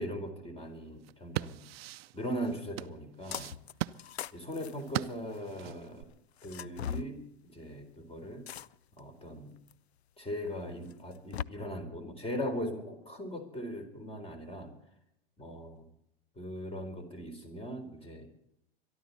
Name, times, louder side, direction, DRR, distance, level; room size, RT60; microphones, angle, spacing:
voice 1, 0.0-1.6 2.1-3.5 4.3-6.0 6.4-8.5 9.0-9.5 10.2-14.7 15.4-15.9 16.4-18.3, equal, 20° left, 7 dB, 4.0 m, -39 dB
sound 1, 1.0-6.0, right 15 dB, 70° right, 0.6 m, -39 dB
sound 2, 3.3-3.7 4.0-5.5 6.4-7.1 8.5-9.0 9.7-9.8 10.9-11.4, left 9 dB, 90° left, 0.5 m, -39 dB
23.0 x 12.5 x 4.2 m, 0.77 s
hypercardioid pair, 100°, 31 cm